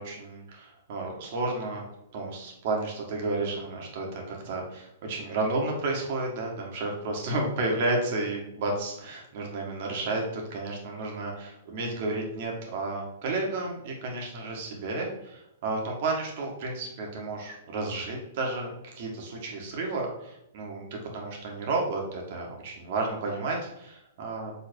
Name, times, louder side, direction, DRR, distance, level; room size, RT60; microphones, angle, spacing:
voice 1, 0.0-1.8 2.1-24.5, right 2 dB, 55° right, 0 dB, 1.9 m, -32 dB
5.5 x 3.8 x 4.7 m, 0.85 s
hypercardioid pair, 120°, 0 cm